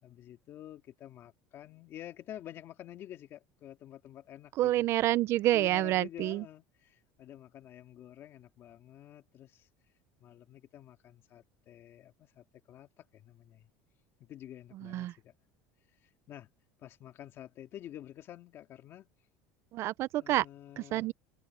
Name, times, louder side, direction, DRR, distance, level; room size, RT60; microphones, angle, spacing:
voice 1, 0.0-4.9 5.5-9.7 10.2-13.7 14.2-15.3 16.0-16.5 16.8-19.1 20.2-21.1, left 12 dB, 40° left, 2.4 m, -49 dB
voice 2, 4.6-6.4 14.8-15.1 19.7-20.4 20.8-21.1, right 15 dB, 40° right, 0.5 m, -28 dB
cardioid pair, 155°, 7 cm